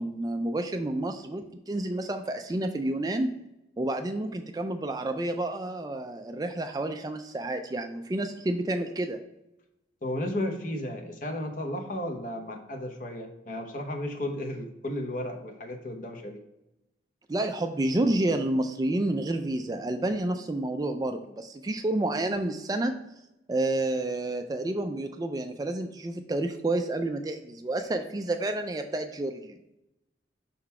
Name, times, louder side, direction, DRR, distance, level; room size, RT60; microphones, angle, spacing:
voice 1, 0.0-3.3 3.8-9.2 17.3-22.9 23.5-29.6, right 1 dB, 20° right, 7 dB, 0.3 m, -29 dB
voice 2, 10.0-16.4, left 1 dB, 45° left, 3 dB, 0.9 m, -34 dB
5.6 x 4.0 x 4.2 m, 0.90 s
head